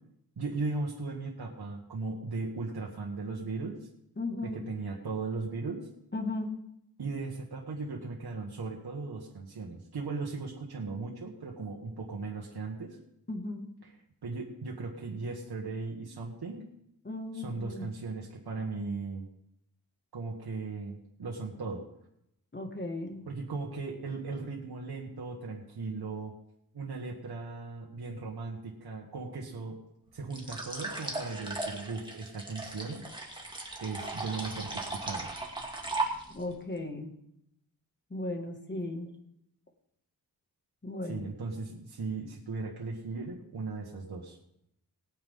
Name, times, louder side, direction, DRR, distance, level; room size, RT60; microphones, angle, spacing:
voice 1, 0.4-3.9 4.4-5.9 7.0-13.0 13.8-13.9 14.2-16.7 17.3-19.3 20.1-21.8 23.3-26.3 26.7-29.8 30.1-33.0 33.8-35.3 41.1-44.4, right 3 dB, 85° right, -2 dB, 1.8 m, -37 dB
voice 2, 4.2-4.6 6.1-6.5 13.3-13.7 17.0-17.9 22.5-23.3 36.3-37.1 38.1-39.1 40.8-41.3, left 2 dB, 30° left, 3 dB, 2.1 m, -36 dB
sound 1, 30.3-36.5, right 2 dB, 10° right, 2.3 m, -37 dB
19.5 x 9.0 x 3.8 m, 0.77 s
wide cardioid pair, 110°, 38 cm